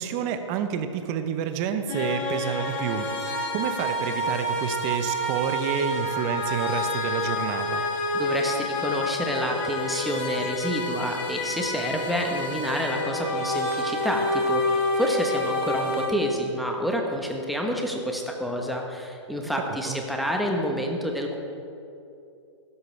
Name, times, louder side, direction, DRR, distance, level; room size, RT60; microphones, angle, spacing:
voice 1, 0.0-7.8 19.5-20.0, right 7 dB, 30° right, 8 dB, 0.9 m, -29 dB
sound 1, 1.9-16.1, left 1 dB, 40° left, 3.2 m, -28 dB
voice 2, 8.1-21.4, equal, ahead, 1 dB, 1.2 m, -28 dB
15.5 x 12.5 x 3.4 m, 2.7 s
hypercardioid pair, 135°, 16 cm